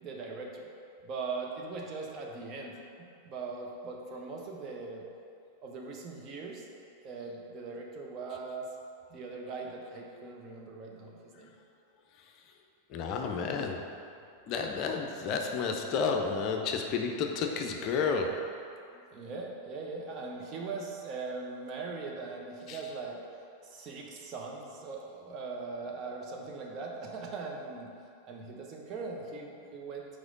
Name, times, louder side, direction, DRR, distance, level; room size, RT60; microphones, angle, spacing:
voice 1, 0.0-0.7 1.0-5.0 5.6-6.6 7.0-8.7 9.1-11.5 18.9-23.2 23.6-27.9 28.3-30.1, right 4 dB, 35° right, -1 dB, 0.9 m, -40 dB
voice 2, 12.9-14.0 14.5-18.7 22.7-22.8, left 5 dB, 40° left, 3 dB, 0.5 m, -31 dB
4.9 x 4.5 x 5.3 m, 2.5 s
figure-of-eight pair, 90°, 0 cm